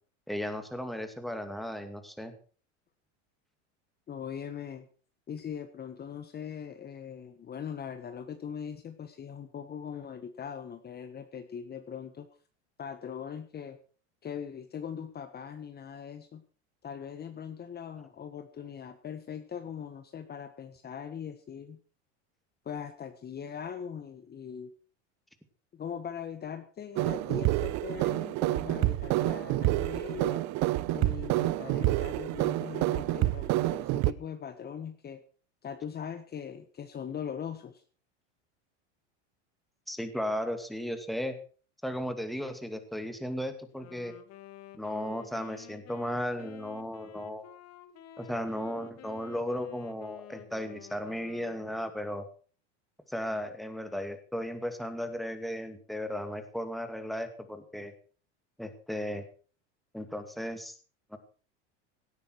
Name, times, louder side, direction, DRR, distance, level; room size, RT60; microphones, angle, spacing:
voice 1, 0.3-2.3 39.9-41.4 41.8-44.1 44.7-47.5 48.2-52.3 53.1-57.9 58.6-59.2 59.9-60.7 61.1-61.2, equal, ahead, 7 dB, 2.4 m, -35 dB
voice 2, 4.1-4.9 5.3-12.3 12.8-13.8 14.2-16.4 16.8-21.8 22.6-24.7 25.7-30.5 30.9-35.2 35.6-37.8, left 7 dB, 25° left, 8 dB, 1.5 m, -40 dB
sound 1, 27.0-34.1, right 18 dB, 50° right, 0.9 m, -28 dB
Wind instrument woodwind instrument, 43.7-52.1, left 12 dB, 45° left, 2.3 m, -51 dB
17.5 x 12.5 x 4.7 m, 0.40 s
supercardioid pair, 115°, 36 cm